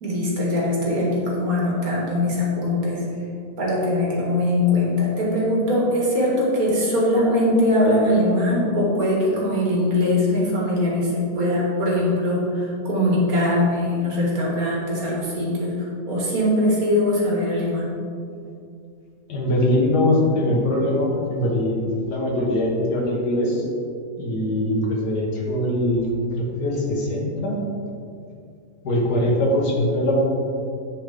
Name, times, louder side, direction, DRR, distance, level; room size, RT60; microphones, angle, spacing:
voice 1, 0.0-3.0 3.6-17.9, left 1 dB, 65° right, -4 dB, 2.1 m, -21 dB
voice 2, 19.3-23.7 24.2-26.1 26.3-27.6 28.8-30.3, left 1 dB, 80° left, -3 dB, 1.8 m, -22 dB
9.9 x 4.8 x 3.5 m, 2.4 s
omnidirectional pair, 1.7 m